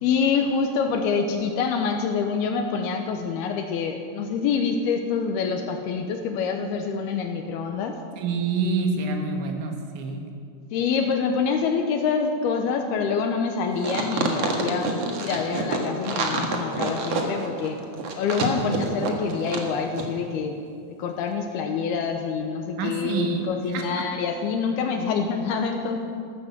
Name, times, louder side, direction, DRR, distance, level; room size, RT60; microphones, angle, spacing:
voice 1, 0.0-8.0 10.7-17.8 18.2-20.6 20.9-26.0, left 5 dB, 75° left, 4 dB, 2.5 m, -26 dB
voice 2, 8.2-10.2 22.8-23.8, right 4 dB, 80° right, 3 dB, 4.0 m, -27 dB
sound 1, 13.8-19.7 19.9-20.1, right 4 dB, 60° right, 1.7 m, -27 dB
14.5 x 13.5 x 7.4 m, 2.4 s
omnidirectional pair, 5.2 m